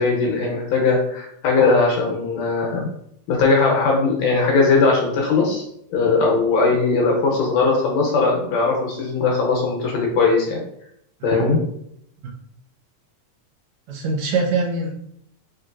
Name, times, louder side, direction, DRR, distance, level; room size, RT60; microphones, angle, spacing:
voice 1, 0.0-2.9 3.3-5.6 5.9-10.6 11.2-11.6, left 4 dB, 70° left, -1 dB, 1.9 m, -19 dB
voice 2, 11.2-11.6 13.9-14.9, right 3 dB, 75° right, -2 dB, 1.9 m, -23 dB
4.5 x 3.0 x 2.4 m, 0.72 s
omnidirectional pair, 3.4 m